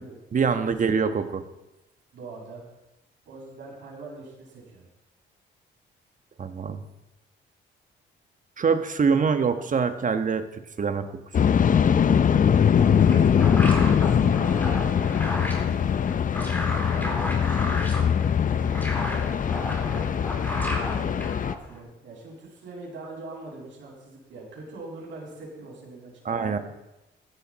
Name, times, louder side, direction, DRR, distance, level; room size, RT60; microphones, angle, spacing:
voice 1, 0.3-1.4 6.4-6.8 8.6-11.5 26.2-26.6, right 5 dB, 40° right, 8 dB, 1.3 m, -25 dB
voice 2, 2.1-2.7 3.3-4.9 12.6-13.5 13.9-15.3 16.9-17.3 18.5-21.3 21.6-26.6, right 3 dB, 70° right, -3 dB, 6.4 m, -43 dB
sound 1, 11.3-21.5, left 8 dB, 40° left, 0.7 m, -22 dB
sound 2, 12.8-21.8, left 1 dB, 10° left, 4.0 m, -34 dB
15.5 x 12.0 x 4.2 m, 0.96 s
cardioid pair, 90°, 20 cm